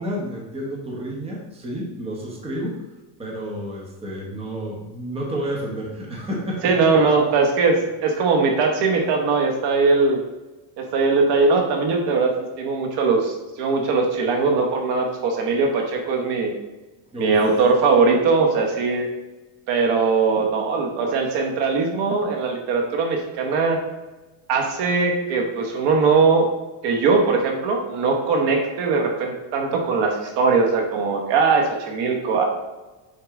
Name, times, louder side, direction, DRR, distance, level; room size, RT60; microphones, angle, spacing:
voice 1, 0.0-2.9 3.2-6.9 17.1-17.4, equal, 10° right, -2 dB, 1.1 m, -30 dB
voice 2, 6.6-10.2 10.8-16.5 17.2-19.1 19.7-23.8 24.5-26.5 26.8-32.5, right 4 dB, 55° right, 2 dB, 1.2 m, -20 dB
6.7 x 4.5 x 3.7 m, 1.1 s
cardioid pair, 160°, 48 cm